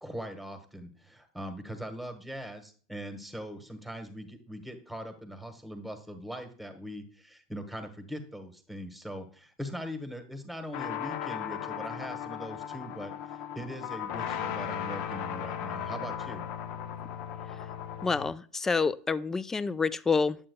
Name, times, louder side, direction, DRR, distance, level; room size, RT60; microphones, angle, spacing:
voice 1, 0.0-16.5, equal, ahead, 7 dB, 1.2 m, -41 dB
sound 1, 10.7-18.3, left 9 dB, 60° left, 0.6 m, -36 dB
voice 2, 18.0-20.4, left 4 dB, 15° left, 17 dB, 0.3 m, -28 dB
8.8 x 7.5 x 2.2 m, 0.43 s
hypercardioid pair, 105°, 3 cm